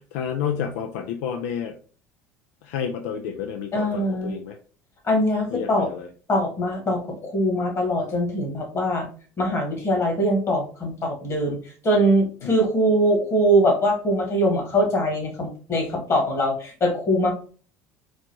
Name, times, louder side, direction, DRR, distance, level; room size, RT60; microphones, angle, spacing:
voice 1, 0.0-1.8 2.6-4.6 5.5-6.1 12.4-12.6, left 8 dB, 75° left, 6 dB, 0.4 m, -30 dB
voice 2, 3.7-4.4 5.0-5.9 6.3-9.1 9.4-11.6 11.8-17.3, equal, 35° left, 2 dB, 1.7 m, -22 dB
4.0 x 2.3 x 2.9 m, 0.40 s
hypercardioid pair, 80°, 8 cm